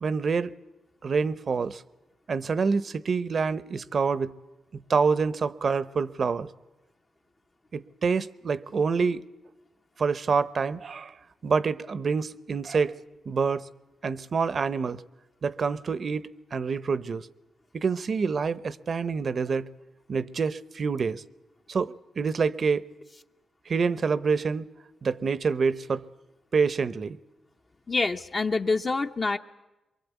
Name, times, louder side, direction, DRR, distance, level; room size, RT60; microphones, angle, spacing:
voice 1, 0.0-0.5 1.0-1.8 2.3-4.3 4.7-6.5 7.7-9.2 10.0-11.1 11.4-13.0 13.3-13.7 14.0-15.0 15.4-17.3 17.7-19.7 20.1-21.2 21.7-22.9 23.7-24.7 25.0-26.0 26.5-27.2, right 5 dB, 55° right, 0.8 m, -27 dB
voice 2, 27.9-29.4, left 3 dB, 40° left, 0.8 m, -26 dB
23.5 x 22.5 x 8.3 m
cardioid pair, 65°, 0 cm